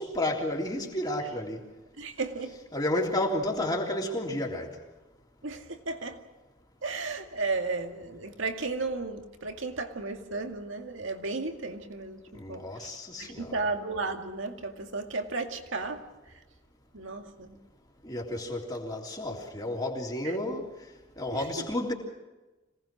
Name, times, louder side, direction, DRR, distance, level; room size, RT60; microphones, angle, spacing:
voice 1, 0.0-1.6 2.7-4.8 12.3-13.6 18.0-20.7 21.2-21.9, left 1 dB, 20° left, 3.4 m, -31 dB
voice 2, 2.0-2.5 5.4-6.2 6.8-16.4 16.9-17.6 20.2-20.4 21.3-21.7, right 3 dB, 75° right, 2.2 m, -34 dB
26.0 x 19.0 x 6.2 m
head